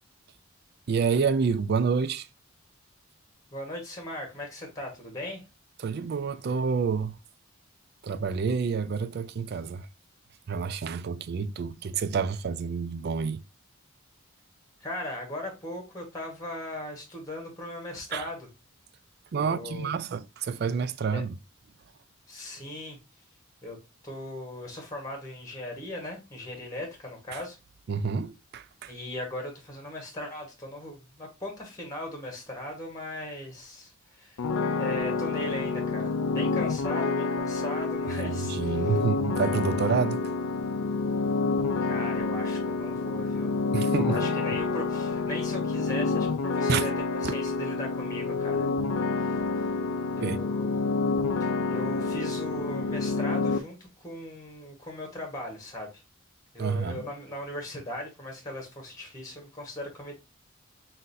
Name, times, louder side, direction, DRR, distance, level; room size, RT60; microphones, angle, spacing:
voice 1, 0.9-2.3 5.8-7.2 8.0-9.9 10.5-13.4 18.1-18.3 19.3-21.4 27.9-28.9 38.1-40.2 43.7-44.2 46.7-46.9 47.2-47.3 50.2-50.4 56.6-57.0, right 5 dB, 45° right, 0.3 m, -28 dB
voice 2, 3.5-5.4 14.8-18.5 19.3-19.9 21.1-21.2 22.3-23.0 23.6-23.8 24.0-27.6 28.9-34.5 34.8-38.9 41.8-43.5 44.0-46.9 47.2-48.7 49.2-49.7 50.2-50.7 51.4-56.0 56.5-60.1, left 1 dB, 15° left, 1.2 m, -38 dB
sound 1, 34.4-53.6, left 4 dB, 85° left, 0.5 m, -28 dB
5.8 x 2.6 x 2.6 m
head